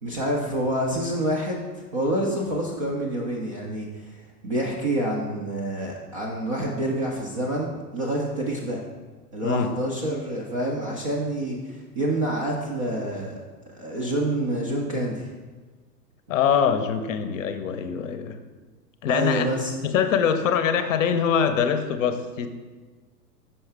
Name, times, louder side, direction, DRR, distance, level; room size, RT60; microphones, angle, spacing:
voice 1, 0.0-8.8 9.3-13.4 13.7-15.3 19.1-19.7, right 1 dB, 25° right, -2 dB, 0.3 m, -27 dB
voice 2, 16.3-18.4 19.0-19.5 19.8-22.5, left 7 dB, 50° left, 9 dB, 0.7 m, -23 dB
5.5 x 5.5 x 3.4 m, 1.3 s
figure-of-eight pair, 105°, 50 cm